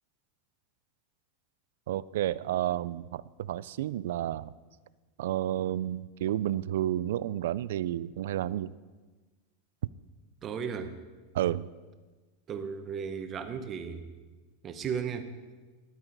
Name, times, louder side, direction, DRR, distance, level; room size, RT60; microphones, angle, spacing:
voice 1, 1.9-4.5 5.2-8.8 11.3-11.7, right 12 dB, 70° right, 18 dB, 0.3 m, -31 dB
voice 2, 10.4-10.9 12.5-14.0 14.6-15.4, right 6 dB, 20° right, 8 dB, 0.7 m, -35 dB
13.5 x 11.0 x 3.9 m, 1.3 s
supercardioid pair, 170°, 0 cm